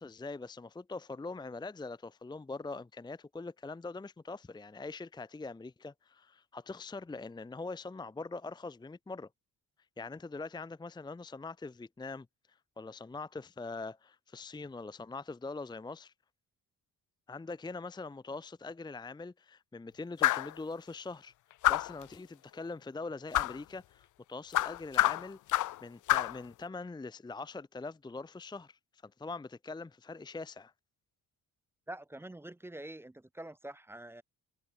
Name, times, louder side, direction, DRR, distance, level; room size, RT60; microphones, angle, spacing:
voice 1, 0.0-9.3 10.0-16.1 17.3-21.3 21.7-30.7, left 3 dB, 10° left, 0.8 m, -43 dB
sound 1, 20.2-20.5 21.6-22.0 23.3-23.6 24.5-25.8 26.1-26.4, left 16 dB, 55° left, 0.4 m, -27 dB
voice 2, 31.9-34.2, right 1 dB, 5° right, 0.4 m, -45 dB
cardioid pair, 150°, 37 cm